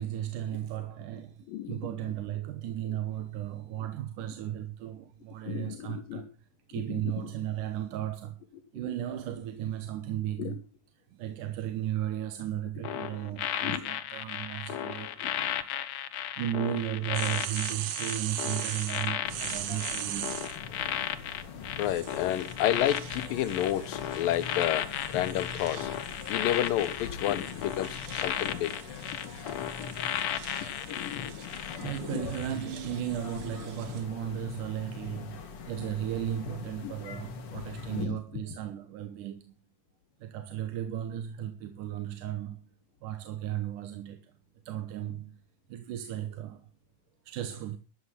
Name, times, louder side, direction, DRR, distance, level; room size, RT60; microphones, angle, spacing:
voice 1, 0.0-6.3 6.7-8.4 8.7-10.6 11.1-15.8 16.4-20.3 21.2-21.4 31.8-39.5 40.2-42.6 43.0-44.3 44.7-45.3 45.7-46.7 47.3-47.8, right 11 dB, 70° right, 2.5 m, -35 dB
voice 2, 1.5-1.8 5.4-6.2 6.7-7.3 10.4-10.6 13.6-13.9 15.2-15.3 21.8-25.9 26.3-28.7 29.7-30.0 30.9-31.5 31.8-32.2 36.8-36.9 37.9-38.2, left 12 dB, 80° left, 2.7 m, -31 dB
sound 1, 12.8-32.0 32.3-32.6, left 11 dB, 65° left, 1.9 m, -35 dB
sound 2, 17.1-20.6 21.8-34.0, right 11 dB, 85° right, 3.2 m, -41 dB
sound 3, 19.2-38.1, left 6 dB, 45° left, 2.3 m, -43 dB
13.0 x 11.5 x 5.6 m
omnidirectional pair, 4.1 m